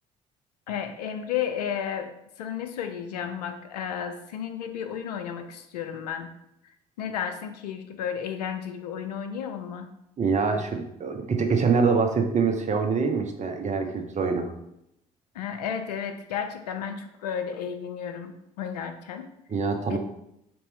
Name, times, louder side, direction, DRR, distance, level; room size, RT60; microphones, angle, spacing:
voice 1, 0.7-2.1 2.4-6.3 7.0-9.9 15.3-18.3 18.6-19.3 19.9-20.0, left 8 dB, 85° left, 7 dB, 0.5 m, -32 dB
voice 2, 10.2-14.5 19.5-20.0, right 5 dB, 35° right, 4 dB, 0.9 m, -25 dB
5.1 x 2.9 x 3.6 m, 0.80 s
hypercardioid pair, 55°, 20 cm